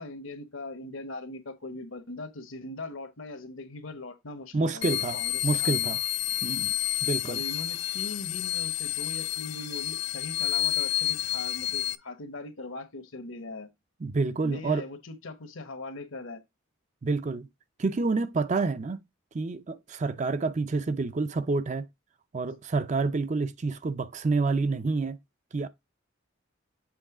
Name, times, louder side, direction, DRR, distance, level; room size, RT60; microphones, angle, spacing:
voice 1, 0.0-4.9 5.1-5.9 7.3-13.7 14.4-16.4, left 2 dB, 70° left, 1.1 m, -40 dB
voice 2, 4.5-5.2 5.4-6.0 6.4-6.7 7.0-7.4 14.0-14.8 17.0-17.5 17.8-19.0 19.3-21.9 22.3-25.2 25.5-25.7, right 3 dB, 35° right, 0.4 m, -28 dB
sound 1, 4.8-12.0, left 13 dB, 50° left, 0.4 m, -30 dB
7.7 x 3.2 x 4.8 m
head